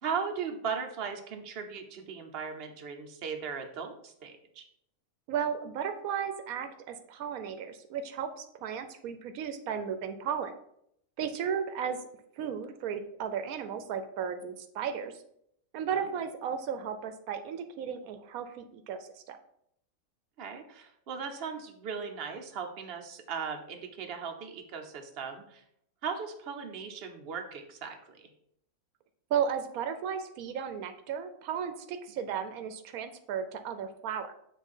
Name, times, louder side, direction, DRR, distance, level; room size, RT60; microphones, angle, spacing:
voice 1, 0.0-4.7 15.9-16.2 20.4-25.6 26.0-28.3, right 6 dB, 50° right, 4 dB, 1.0 m, -38 dB
voice 2, 5.3-10.5 11.2-12.0 12.4-15.1 15.7-19.4 29.3-34.3, right 7 dB, 85° right, 8 dB, 1.1 m, -34 dB
7.3 x 3.4 x 5.4 m, 0.73 s
omnidirectional pair, 1.5 m